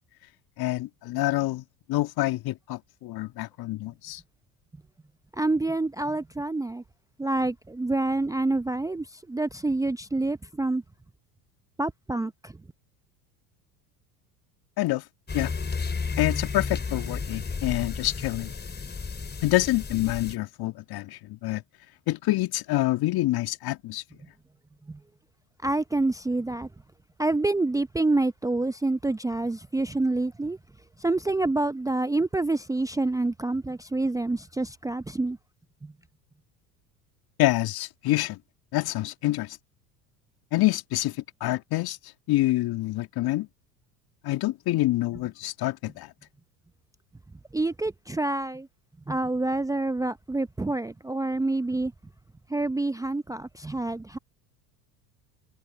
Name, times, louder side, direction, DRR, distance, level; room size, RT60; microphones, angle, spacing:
voice 1, 0.6-1.6 1.9-4.2 14.8-15.0 15.3-15.5 16.2-18.5 19.4-21.6 22.1-24.0 37.4-38.4 38.7-39.6 40.5-42.0 42.3-43.5 44.2-46.1, left 17 dB, 50° left, 2.0 m, -27 dB
voice 2, 5.3-6.8 7.2-10.8 11.8-12.5 24.9-25.0 25.6-26.7 27.2-30.6 31.0-35.4 35.8-35.9 47.5-48.7 49.1-51.9 52.5-54.2, right 2 dB, 5° right, 0.7 m, -27 dB
sound 1, 15.3-20.4, left 5 dB, 20° left, 5.0 m, -32 dB
hypercardioid pair, 75°, 47 cm